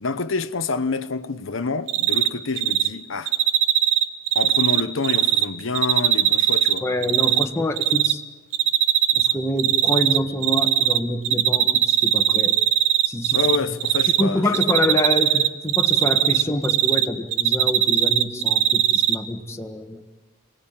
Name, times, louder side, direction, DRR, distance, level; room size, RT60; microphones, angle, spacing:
voice 1, 0.0-3.3 4.3-6.8 13.3-14.8, left 4 dB, 75° left, 1.0 m, -27 dB
Cricket, 1.9-2.3 2.6-2.9 3.3-5.4 5.7-7.4 7.8-8.1 8.5-9.3 9.6-11.0 11.2-13.6 13.8-14.2 14.5-17.0 17.3-19.1, right 11 dB, 70° right, 1.3 m, -19 dB
voice 2, 6.8-8.2 9.2-12.6 13.0-13.8 14.2-20.0, left 1 dB, 15° left, 1.7 m, -26 dB
29.5 x 20.0 x 8.9 m
head